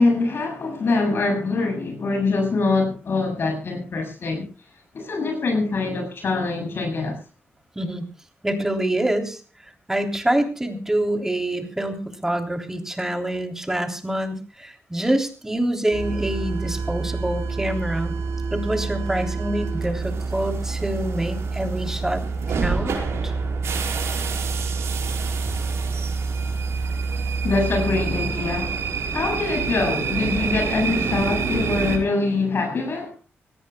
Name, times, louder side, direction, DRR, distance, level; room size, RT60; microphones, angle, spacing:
voice 1, 0.0-4.4 4.9-7.2 27.4-28.8 29.1-33.1, left 3 dB, 55° left, 7.7 m, -24 dB
voice 2, 8.4-18.1 18.5-22.2 22.5-23.0 23.2-23.3, right 1 dB, 10° right, 3.3 m, -26 dB
sound 1, 15.9-32.0, right 4 dB, 80° right, 5.1 m, -27 dB
25.0 x 18.5 x 2.3 m
wide cardioid pair, 115°, 4 cm